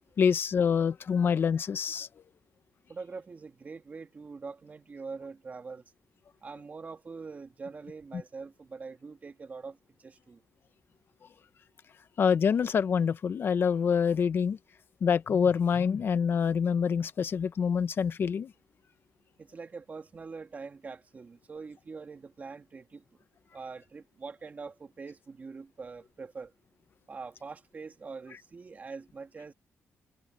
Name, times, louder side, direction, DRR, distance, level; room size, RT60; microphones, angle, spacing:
voice 1, 0.2-2.1 12.2-14.6 15.0-18.5, left 6 dB, 45° left, 0.8 m, -26 dB
voice 2, 2.9-5.8 6.4-10.4 19.4-23.0 23.5-26.5 27.1-29.5, right 4 dB, 30° right, 1.9 m, -43 dB
cardioid pair, 125°, 5 cm